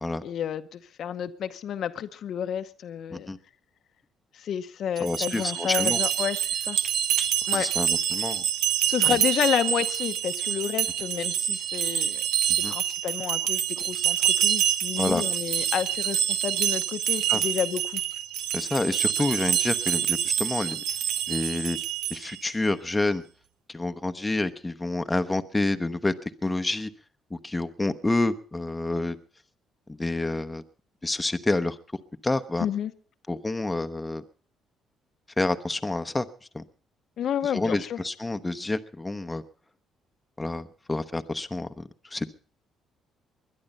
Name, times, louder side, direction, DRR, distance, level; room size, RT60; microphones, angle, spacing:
voice 1, 0.2-3.3 4.3-6.8 7.5-7.7 8.9-12.2 12.7-18.0 32.6-32.9 37.2-38.0, left 9 dB, 60° left, 10 dB, 0.9 m, -30 dB
voice 2, 5.0-6.0 7.5-8.4 9.1-9.2 12.5-12.7 15.0-15.2 17.3-17.4 18.5-20.8 21.3-21.8 22.1-23.2 23.7-26.1 26.4-26.9 27.3-29.2 29.9-30.6 31.0-31.8 32.2-32.7 33.3-34.2 35.4-36.3 36.5-36.6 37.4-39.4 40.4-42.3, left 2 dB, 10° left, 8 dB, 0.9 m, -28 dB
sound 1, 5.0-22.4, right 10 dB, 85° right, 1.1 m, -26 dB
21.0 x 11.0 x 5.4 m, 0.42 s
cardioid pair, 115°, 0 cm